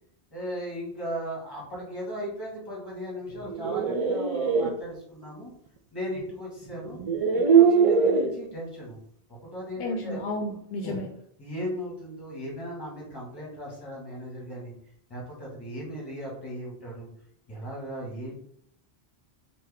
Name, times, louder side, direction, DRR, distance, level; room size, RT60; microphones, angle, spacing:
voice 1, 0.3-5.5 5.9-7.0 7.3-9.0 9.3-10.3 10.8-11.0 11.4-14.7 15.1-17.1 17.5-18.4, equal, 20° left, -3 dB, 1.6 m, -37 dB
sound 1, 3.4-4.7 6.2-6.3 6.9-8.3, right 6 dB, 55° right, 0.4 m, -21 dB
voice 2, 9.8-11.1, left 1 dB, 75° left, 3 dB, 0.8 m, -32 dB
4.5 x 2.7 x 3.5 m, 0.68 s
omnidirectional pair, 1.1 m